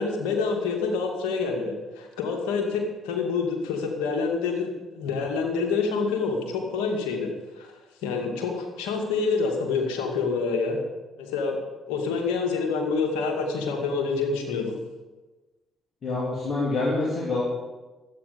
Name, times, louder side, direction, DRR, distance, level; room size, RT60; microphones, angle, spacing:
voice 1, 0.0-7.7 8.0-10.8 11.2-11.6 11.9-14.7, left 4 dB, 85° left, 1 dB, 2.3 m, -27 dB
voice 2, 16.0-17.4, left 2 dB, 55° left, -5 dB, 3.3 m, -26 dB
12.0 x 9.0 x 6.8 m, 1.2 s
hypercardioid pair, 55°, 0 cm